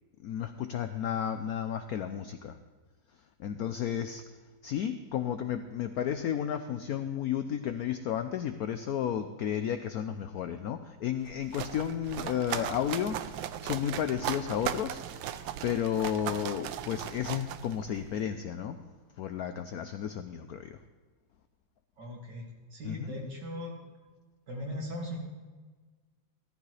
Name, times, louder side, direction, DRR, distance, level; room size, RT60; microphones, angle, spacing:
voice 1, 0.2-2.5 3.4-4.2 4.6-15.0 15.6-18.8 19.2-20.8 22.8-23.3, left 9 dB, 75° left, 8 dB, 0.8 m, -33 dB
sound 1, 11.2-18.2, right 11 dB, 80° right, 1.3 m, -38 dB
voice 2, 22.0-23.8 24.5-25.2, left 1 dB, 60° right, -2 dB, 2.9 m, -39 dB
14.5 x 13.5 x 3.2 m, 1.4 s
omnidirectional pair, 2.1 m